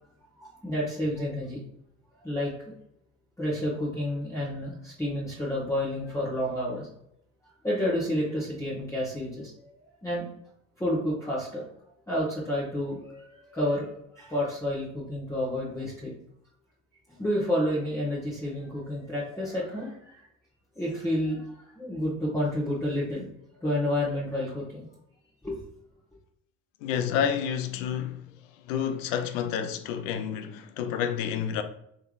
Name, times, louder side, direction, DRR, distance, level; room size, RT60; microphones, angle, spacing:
voice 1, 0.4-1.6 2.2-2.5 3.4-6.9 7.4-9.7 10.0-10.3 10.8-11.6 12.1-16.1 17.1-20.3 20.7-23.3 23.6-24.8 25.4-25.6, left 1 dB, 10° left, 1.3 m, -30 dB
voice 2, 26.8-31.6, left 8 dB, 75° left, 0.5 m, -30 dB
3.4 x 3.3 x 2.4 m
hypercardioid pair, 60°, 38 cm